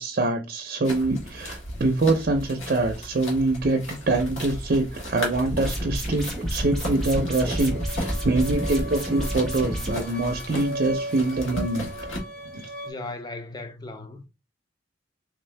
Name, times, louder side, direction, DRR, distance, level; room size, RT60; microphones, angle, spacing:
voice 1, 0.0-11.9 12.5-12.6, right 2 dB, 45° right, 0.5 m, -25 dB
sound 1, 0.8-12.2, left 1 dB, 75° left, 1.4 m, -36 dB
sound 2, 5.5-9.9, equal, ahead, 0.9 m, -29 dB
sound 3, 6.9-12.9, right 1 dB, 45° left, 1.1 m, -37 dB
voice 2, 12.8-14.3, left 2 dB, 20° left, 0.4 m, -37 dB
3.7 x 2.7 x 3.2 m
head